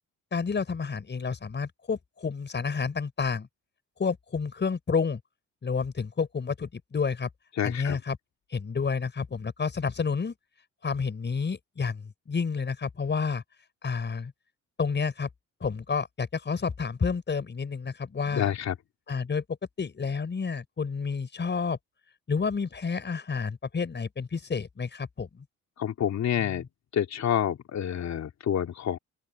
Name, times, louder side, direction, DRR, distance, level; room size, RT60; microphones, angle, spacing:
voice 1, 0.3-3.5 4.0-5.2 5.6-7.3 7.6-8.2 8.5-10.3 10.8-13.4 13.8-14.3 14.8-15.3 15.6-18.5 19.1-19.4 19.8-21.8 22.3-25.4 26.4-26.6, left 5 dB, 35° left, 5.7 m, -30 dB
voice 2, 7.6-8.0 18.3-18.7 25.8-26.7 26.9-29.0, left 9 dB, 65° left, 2.9 m, -28 dB
open air
cardioid pair, 90°, 30 cm